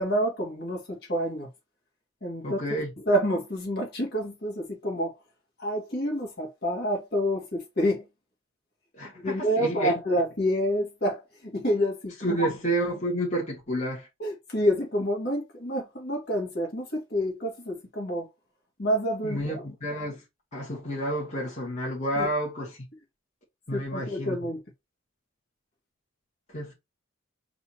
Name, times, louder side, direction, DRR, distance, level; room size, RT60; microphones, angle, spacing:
voice 1, 0.0-1.5 2.2-2.6 3.1-5.2 5.6-8.1 9.2-12.4 14.2-18.3 18.8-19.6 22.2-22.3 23.7-24.6, equal, 50° left, 2.0 m, -28 dB
voice 2, 2.4-2.9 9.0-9.9 12.2-14.1 19.2-20.2 20.5-22.9 23.7-24.4 26.5-26.7, right 1 dB, 35° left, 1.9 m, -30 dB
4.1 x 2.8 x 4.4 m
head